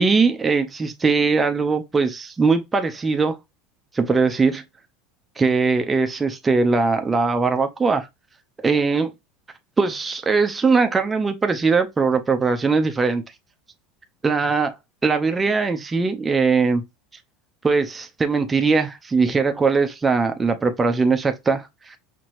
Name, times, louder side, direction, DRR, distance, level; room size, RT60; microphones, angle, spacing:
voice 1, 0.0-3.4 3.9-4.6 5.4-8.1 8.6-9.1 9.8-13.2 14.2-14.7 15.0-16.8 17.6-21.9, right 4 dB, 15° right, 0.7 m, -20 dB
5.9 x 2.9 x 2.6 m
supercardioid pair, 125°, 0 cm